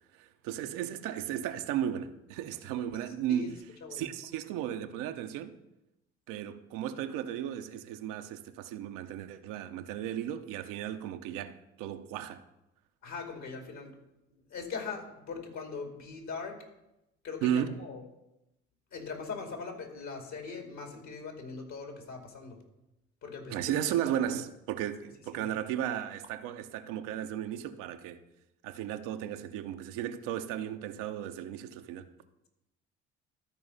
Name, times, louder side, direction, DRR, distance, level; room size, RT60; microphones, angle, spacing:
voice 1, 0.1-3.6 3.9-5.5 6.3-12.4 17.4-17.8 23.5-28.2 28.6-32.1, right 10 dB, 70° right, 0.8 m, -35 dB
voice 2, 3.1-4.1 13.0-13.9 14.5-16.6 17.2-18.0 18.9-22.6 23.2-23.6 25.3-25.5, left 5 dB, 55° left, 2.6 m, -41 dB
13.0 x 4.7 x 5.5 m
hypercardioid pair, 55°, 33 cm